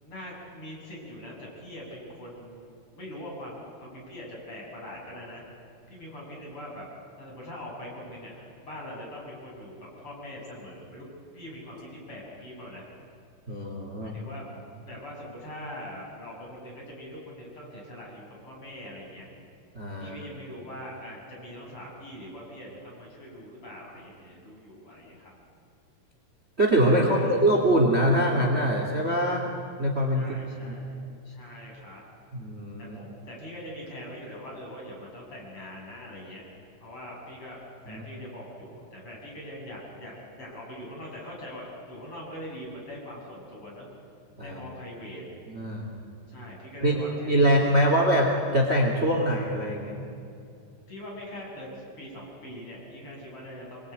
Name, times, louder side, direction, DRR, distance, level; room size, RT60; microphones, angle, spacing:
voice 1, 0.0-5.4 5.9-6.9 7.2-11.1 11.3-12.9 14.0-14.5 14.9-19.3 20.0-25.3 27.0-27.4 30.2-31.0 31.2-32.0 32.8-36.5 36.8-37.6 37.9-43.9 44.4-45.2 46.3-48.0 50.9-53.9, equal, 40° left, -3 dB, 8.7 m, -42 dB
voice 2, 13.5-14.1 19.7-20.2 26.6-29.4 29.8-30.3 30.7-30.8 32.3-33.0 37.9-38.0 44.4-44.6 45.5-45.9 46.8-47.0 47.3-50.0, equal, 20° right, 1 dB, 2.9 m, -23 dB
27.0 x 22.0 x 9.6 m, 2.5 s
omnidirectional pair, 3.7 m